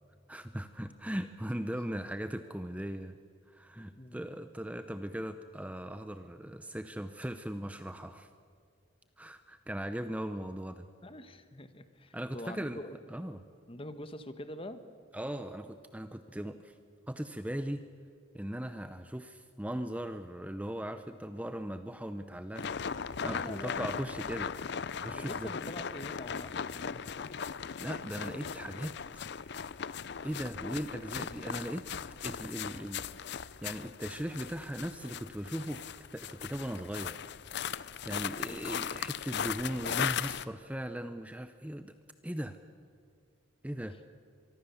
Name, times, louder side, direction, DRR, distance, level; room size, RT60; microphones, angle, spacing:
voice 1, 0.3-3.2 3.5-8.3 9.2-10.9 12.1-12.8 13.1-13.4 15.1-16.8 17.1-17.8 18.3-22.7 23.2-24.5 25.0-25.5 27.8-29.0 30.2-31.8 32.2-37.2 38.0-41.9 42.2-42.6 43.6-44.0, equal, 5° right, 9 dB, 0.7 m, -38 dB
voice 2, 11.0-13.0 13.7-14.8 23.2-24.0 25.1-27.0 38.4-38.8, left 1 dB, 30° left, 10 dB, 1.3 m, -44 dB
sound 1, 22.6-40.5, left 7 dB, 55° left, 0.6 m, -38 dB
24.0 x 24.0 x 7.1 m, 2.3 s
head